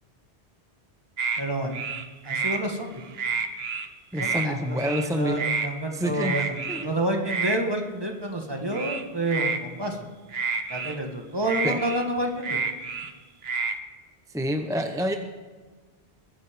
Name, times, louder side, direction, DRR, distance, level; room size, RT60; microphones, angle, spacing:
sound 1, 1.2-1.4 1.7-2.6 3.0-3.9 4.1-4.5 4.8-5.1 5.4-5.7 6.2-6.9 7.3-7.6 8.7-9.6 10.3-11.0 11.4-13.1 13.4-13.8, right 5 dB, 65° right, 1.2 m, -29 dB
voice 1, 1.4-1.8 2.2-3.0 4.2-6.6 6.8-10.1 10.7-12.6, right 1 dB, 20° right, 3 dB, 1.7 m, -29 dB
voice 2, 4.1-5.4 5.9-6.3 6.7-6.9 11.6-11.8 14.3-15.2, equal, 5° right, 6 dB, 0.6 m, -27 dB
22.0 x 9.4 x 5.2 m, 1.4 s
omnidirectional pair, 1.1 m